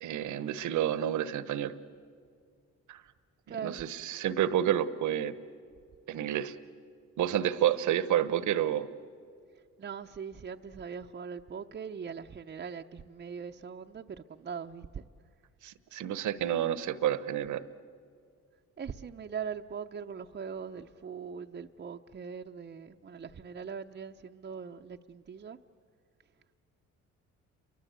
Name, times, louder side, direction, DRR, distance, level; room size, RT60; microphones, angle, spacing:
voice 1, 0.0-1.7 2.9-3.0 3.5-5.3 6.1-6.5 7.2-8.9 15.6-17.6, right 11 dB, 75° right, 15 dB, 1.1 m, -29 dB
voice 2, 3.5-3.8 9.8-15.0 18.8-25.6, right 6 dB, 35° right, 4 dB, 0.7 m, -41 dB
29.5 x 23.5 x 8.2 m, 2.2 s
cardioid pair, 90°, 30 cm